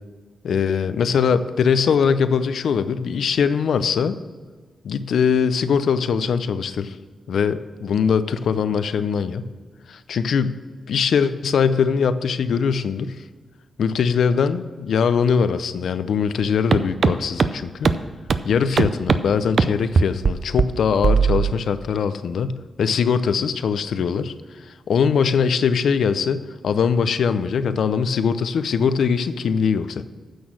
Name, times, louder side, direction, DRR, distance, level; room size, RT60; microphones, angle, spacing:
voice 1, 0.4-4.2 4.8-7.0 7.3-9.5 9.9-10.6 10.9-13.2 13.8-17.9 18.4-30.0, left 6 dB, 80° left, 12 dB, 0.5 m, -21 dB
sound 1, 16.7-16.8 17.0-17.1 17.4-17.5 17.8-17.9 18.3-18.4 18.8-19.2 19.6-19.7 20.0-20.3 20.6-20.7 21.0-21.5, right 5 dB, 55° right, 0.5 m, -17 dB
9.4 x 6.4 x 6.2 m, 1.5 s
cardioid pair, 95°, 0 cm